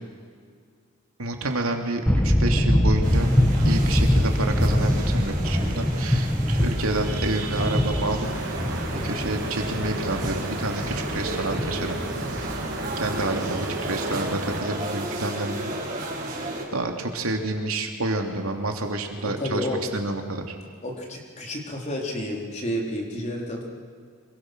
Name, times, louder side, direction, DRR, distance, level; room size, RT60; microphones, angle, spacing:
voice 1, 1.2-3.3 3.6-8.3 9.0-12.0 12.4-12.6 13.0-15.6 16.7-20.6, right 2 dB, 75° right, 3 dB, 2.9 m, -29 dB
sound 1, 2.1-13.6, equal, 5° left, 1.1 m, -24 dB
sound 2, 3.0-16.6, right 2 dB, 40° right, 5.0 m, -34 dB
sound 3, 8.2-14.6, right 2 dB, 55° right, 2.7 m, -34 dB
voice 2, 19.2-19.8 20.8-23.6, equal, 30° left, -1 dB, 4.1 m, -30 dB
26.5 x 23.5 x 6.2 m, 2.1 s
head